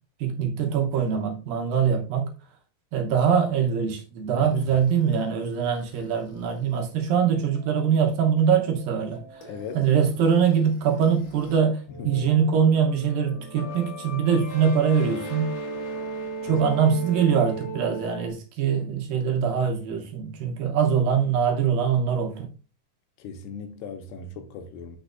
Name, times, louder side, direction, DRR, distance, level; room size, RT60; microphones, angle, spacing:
voice 1, 0.2-2.3 2.9-9.5 9.7-15.5 16.4-22.5, right 7 dB, 70° right, 2.4 m, -23 dB
voice 2, 4.3-4.8 9.5-9.9 11.9-12.3 16.4-16.9 23.2-25.0, left 5 dB, 85° left, 2.9 m, -39 dB
sound 1, 4.4-11.6 11.9-18.3, right 2 dB, 60° left, 2.9 m, -39 dB
8.6 x 6.3 x 2.5 m
omnidirectional pair, 4.6 m